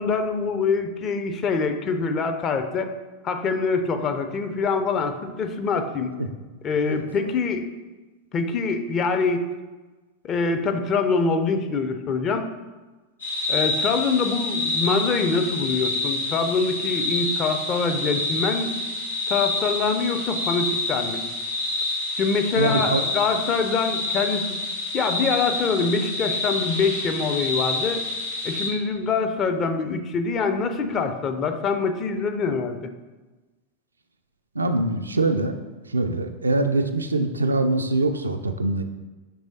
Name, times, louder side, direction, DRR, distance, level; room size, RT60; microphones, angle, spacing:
voice 1, 0.0-2.9 3.2-6.1 6.6-7.7 8.3-9.4 10.2-12.5 13.5-18.7 19.3-21.2 22.2-24.6 24.9-28.0 28.4-32.8, left 4 dB, 30° left, 7 dB, 0.5 m, -24 dB
sound 1, 13.2-28.7, left 2 dB, 75° left, 1.2 m, -28 dB
voice 2, 22.6-23.0 34.6-35.5 35.9-38.8, right 2 dB, 80° right, 7 dB, 0.3 m, -23 dB
6.1 x 3.2 x 2.7 m, 1.2 s
figure-of-eight pair, 90°, 0 cm